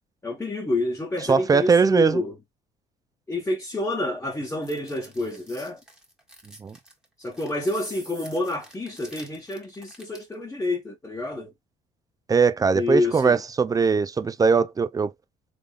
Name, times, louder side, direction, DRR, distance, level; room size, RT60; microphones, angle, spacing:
voice 1, 0.2-2.3 3.3-5.8 7.2-11.5 12.7-13.4, left 2 dB, 15° left, 1.1 m, -28 dB
voice 2, 1.3-2.2 6.6-6.8 12.3-15.1, right 5 dB, 20° right, 0.4 m, -20 dB
sound 1, 4.4-10.3, right 1 dB, 5° right, 1.4 m, -48 dB
3.5 x 3.5 x 2.4 m
cardioid pair, 110°, 17 cm